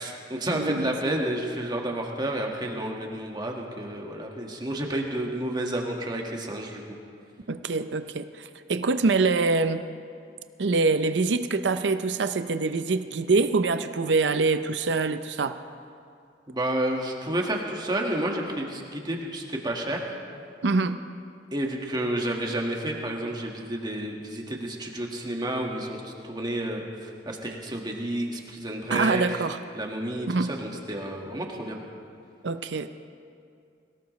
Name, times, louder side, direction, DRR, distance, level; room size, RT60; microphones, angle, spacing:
voice 1, 0.0-6.8 16.5-20.1 21.5-29.2 29.7-31.8, right 1 dB, 25° right, 0 dB, 1.7 m, -30 dB
voice 2, 0.5-0.9 7.5-9.9 10.6-15.6 20.6-21.0 28.9-29.6 30.3-30.5 32.4-32.9, right 3 dB, 85° right, 10 dB, 0.6 m, -25 dB
22.0 x 17.5 x 3.2 m, 2.4 s
head